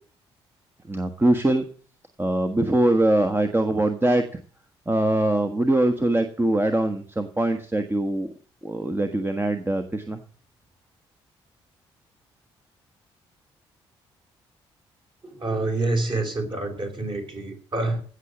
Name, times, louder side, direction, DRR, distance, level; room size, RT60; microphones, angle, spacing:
voice 1, 0.9-1.7 2.2-4.2 4.9-8.3 8.6-10.2, right 1 dB, 15° right, 6 dB, 1.3 m, -22 dB
voice 2, 15.2-18.0, right 2 dB, 35° right, 3 dB, 4.6 m, -27 dB
16.5 x 6.6 x 7.3 m, 0.43 s
figure-of-eight pair, 40°, 14 cm